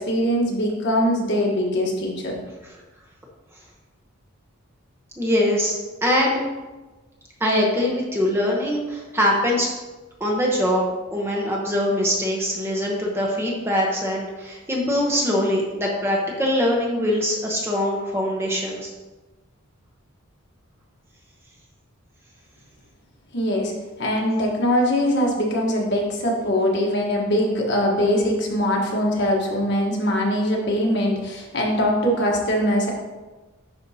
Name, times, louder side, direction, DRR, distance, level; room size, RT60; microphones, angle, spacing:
voice 1, 0.0-2.4 23.3-23.7 24.0-32.9, equal, 55° left, -1 dB, 1.3 m, -22 dB
voice 2, 5.2-5.8 6.0-6.4 7.4-9.7 10.2-18.9, equal, 10° right, -2 dB, 0.9 m, -22 dB
10.5 x 4.4 x 2.8 m, 1.2 s
head